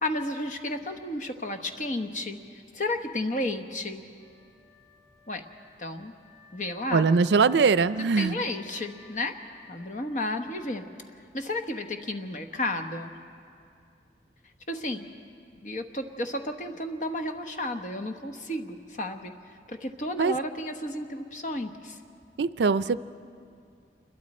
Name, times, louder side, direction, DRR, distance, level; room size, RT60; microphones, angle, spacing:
voice 1, 0.0-2.4 2.7-4.0 5.3-5.4 5.8-6.1 6.5-7.1 8.2-9.3 9.7-10.9 11.3-13.1 14.7-15.1 15.6-19.3 19.7-22.0, left 1 dB, 45° left, 6 dB, 1.1 m, -32 dB
Wind instrument woodwind instrument, 4.1-11.1, left 2 dB, 20° left, 6.1 m, -58 dB
voice 2, 6.9-8.4 20.2-20.3 22.4-23.0, right 5 dB, 80° right, 15 dB, 0.4 m, -22 dB
28.0 x 22.0 x 4.3 m, 2.4 s
head